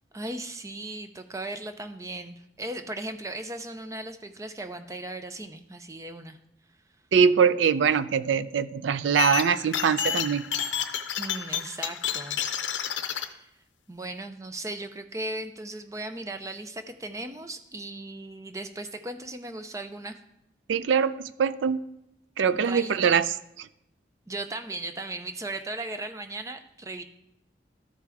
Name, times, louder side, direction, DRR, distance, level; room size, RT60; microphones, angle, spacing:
voice 1, 0.1-6.4 11.1-12.4 13.1-13.5 13.9-20.2 22.5-23.0 24.3-27.0, right 2 dB, 15° right, 8 dB, 0.5 m, -37 dB
voice 2, 7.1-10.4 20.7-21.8 22.4-23.7, right 6 dB, 85° right, 15 dB, 0.4 m, -23 dB
sound 1, 9.2-13.2, left 9 dB, 80° left, 0.6 m, -30 dB
13.0 x 4.8 x 3.4 m, 0.84 s
head